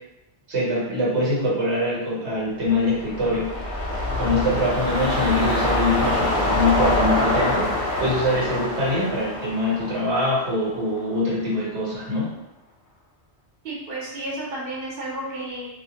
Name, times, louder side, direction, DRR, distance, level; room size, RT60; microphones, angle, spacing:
voice 1, 0.5-3.5 4.2-12.3, left 1 dB, 80° right, -6 dB, 1.1 m, -24 dB
sound 1, 2.7-11.1 11.5-11.6, left 1 dB, 55° left, 0.7 m, -25 dB
voice 2, 13.6-15.7, right 1 dB, 60° right, -6 dB, 0.9 m, -32 dB
2.1 x 2.1 x 2.8 m, 0.94 s
omnidirectional pair, 1.1 m